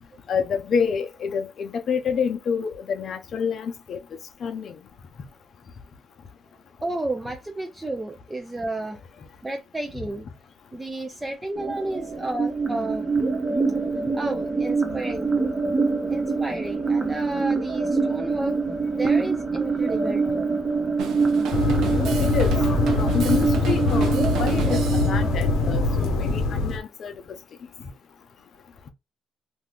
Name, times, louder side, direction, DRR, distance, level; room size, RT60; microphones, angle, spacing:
voice 1, 0.3-4.0 4.4-4.7 22.2-22.5 22.9-27.1, left 6 dB, 60° left, 0.5 m, -28 dB
voice 2, 6.8-9.0 9.4-10.3 10.7-13.1 14.1-15.3 16.1-18.6 18.9-20.6, right 2 dB, 15° right, 0.5 m, -32 dB
sound 1, 11.6-26.5, right 4 dB, 35° right, 0.9 m, -25 dB
Drum kit, 21.0-25.2, right 7 dB, 85° right, 0.6 m, -34 dB
sound 2, 21.5-26.8, left 4 dB, 85° left, 0.8 m, -23 dB
2.6 x 2.3 x 3.4 m
cardioid pair, 90°, 0 cm